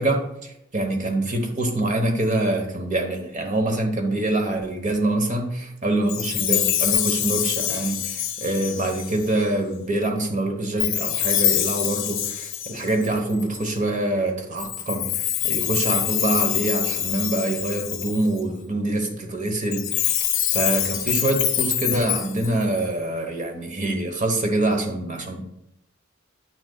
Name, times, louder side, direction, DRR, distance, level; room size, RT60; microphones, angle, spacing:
voice 1, 0.0-20.2 20.5-25.4, right 1 dB, 35° right, 3 dB, 1.0 m, -25 dB
Chime, 6.1-9.4 10.8-13.6 14.6-18.4 19.7-22.8, left 12 dB, 75° left, 0.6 m, -25 dB
8.7 x 6.4 x 2.3 m, 0.83 s
head